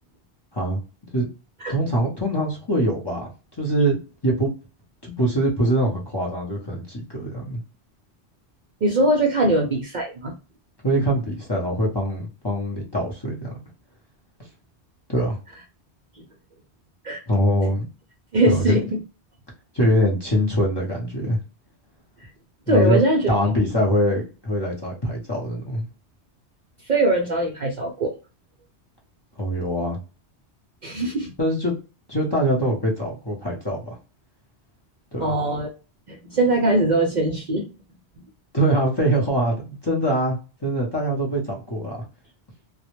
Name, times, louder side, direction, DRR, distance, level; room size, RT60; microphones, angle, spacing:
voice 1, 1.7-3.3 3.6-4.5 5.0-7.6 10.8-13.6 15.1-15.4 17.3-17.8 18.5-18.8 19.7-21.4 22.7-23.0 23.3-25.9 29.4-30.0 31.4-31.7 32.1-33.9 35.1-35.3 38.5-42.0, equal, 30° left, -3 dB, 0.6 m, -23 dB
voice 2, 8.8-10.3 16.1-16.2 17.0-17.2 18.3-19.0 22.7-23.3 26.9-28.2 30.8-31.3 35.2-35.7 36.1-37.7, right 2 dB, 55° right, 1 dB, 0.5 m, -21 dB
2.2 x 2.0 x 2.9 m, 0.32 s
omnidirectional pair, 1.2 m